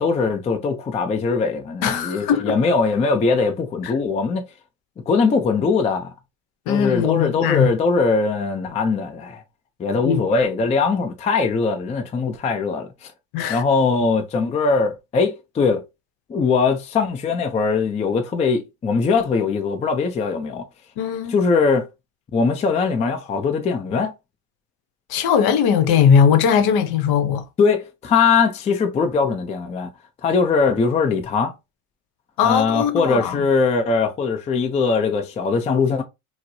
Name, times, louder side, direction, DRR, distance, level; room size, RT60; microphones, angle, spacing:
voice 1, 0.0-4.4 5.1-6.1 6.7-9.4 9.8-13.1 13.5-15.8 16.3-20.7 21.3-21.9 22.3-24.1 27.6-29.9 30.2-31.5 32.4-36.0, left 4 dB, 15° left, 0.4 m, -21 dB
voice 2, 1.8-2.6 3.8-3.9 6.7-7.7 10.1-10.2 13.3-13.6 21.0-21.4 25.1-27.4 32.4-33.5, left 7 dB, 55° left, 0.7 m, -19 dB
4.3 x 2.0 x 2.6 m
supercardioid pair, 110°, 43 cm